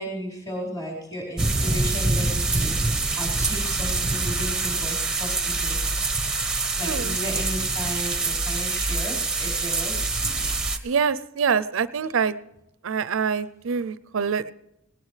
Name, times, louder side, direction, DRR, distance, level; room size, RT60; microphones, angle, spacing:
voice 1, 0.0-2.7 3.2-5.8 6.8-10.1, equal, 20° left, -4 dB, 4.5 m, -34 dB
sound 1, 1.4-10.8, right 3 dB, 5° right, 1.0 m, -25 dB
voice 2, 6.8-7.2 10.8-12.4 12.8-14.5, right 6 dB, 65° right, 16 dB, 0.5 m, -25 dB
19.0 x 18.5 x 3.2 m, 0.85 s
head